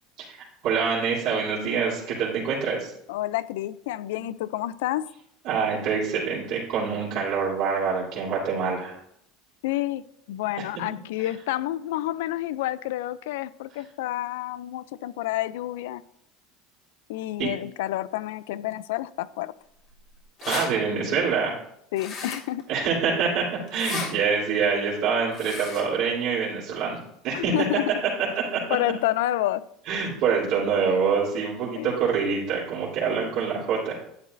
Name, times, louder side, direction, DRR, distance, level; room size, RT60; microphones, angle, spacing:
voice 1, 0.6-2.9 4.2-4.3 5.4-8.9 17.4-17.5 20.4-21.6 22.7-27.0 27.2-27.5 28.5-28.6 29.9-34.0, right 6 dB, 65° right, -6 dB, 3.3 m, -25 dB
voice 2, 3.1-5.1 9.6-10.0 10.3-16.0 17.1-19.5 21.9-22.6 27.3-27.9 28.7-29.6 31.8-31.9, left 14 dB, 85° left, 17 dB, 0.4 m, -29 dB
sound 1, 19.9-20.0 20.2-20.7 22.0-22.6 23.7-24.1 25.3-25.8, left 4 dB, 45° left, 3.2 m, -33 dB
11.5 x 8.6 x 2.6 m, 0.73 s
supercardioid pair, 110°, 0 cm